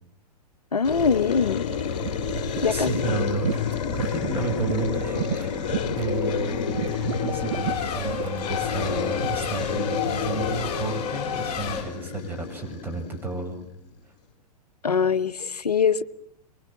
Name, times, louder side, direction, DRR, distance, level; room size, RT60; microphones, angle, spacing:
voice 1, 0.7-1.6 2.6-2.9 14.8-16.0, left 6 dB, 75° left, 1.0 m, -22 dB
sound 1, 0.8-13.8, left 7 dB, 50° left, 2.7 m, -30 dB
sound 2, 1.7-9.5, right 12 dB, 50° right, 0.9 m, -35 dB
voice 2, 2.7-3.6 4.0-5.6 6.0-13.6, right 2 dB, 10° right, 6.9 m, -31 dB
Race car auto racing / Accelerating revving vroom / Mechanisms, 4.0-11.8, left 7 dB, 30° left, 6.7 m, -33 dB
23.5 x 23.5 x 7.5 m
figure-of-eight pair, 105°, 20 cm